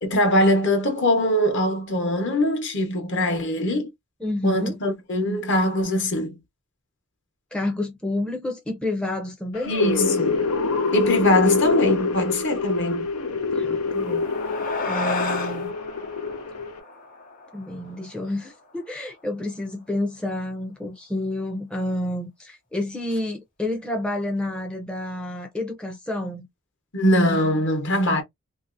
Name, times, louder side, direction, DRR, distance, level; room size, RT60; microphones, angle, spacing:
voice 1, 0.0-3.9 4.4-6.4 9.7-10.4 10.9-13.1 26.9-28.2, left 1 dB, 55° left, 1.0 m, -22 dB
voice 2, 4.2-4.8 7.5-9.7 13.5-14.2 14.8-15.7 17.5-26.4, left 1 dB, 5° left, 0.5 m, -29 dB
sound 1, 9.6-16.8, left 4 dB, 90° left, 0.6 m, -25 dB
sound 2, 13.7-18.5, left 3 dB, 40° left, 0.8 m, -32 dB
2.9 x 2.7 x 2.5 m
head